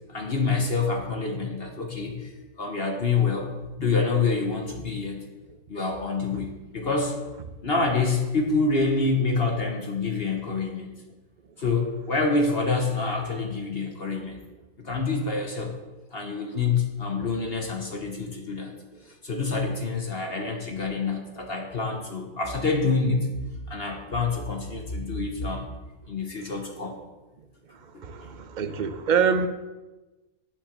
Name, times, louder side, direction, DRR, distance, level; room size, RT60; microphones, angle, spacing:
voice 1, 0.1-2.3 2.6-5.2 5.7-7.2 7.6-10.9 11.6-14.4 14.8-15.7 16.1-18.7 19.2-23.3 23.7-25.7 26.1-27.0 27.9-28.0, left 4 dB, 45° left, 2 dB, 1.3 m, -27 dB
voice 2, 28.0-29.5, right 6 dB, 50° right, 9 dB, 0.6 m, -25 dB
9.0 x 6.6 x 6.6 m, 1.1 s
omnidirectional pair, 1.6 m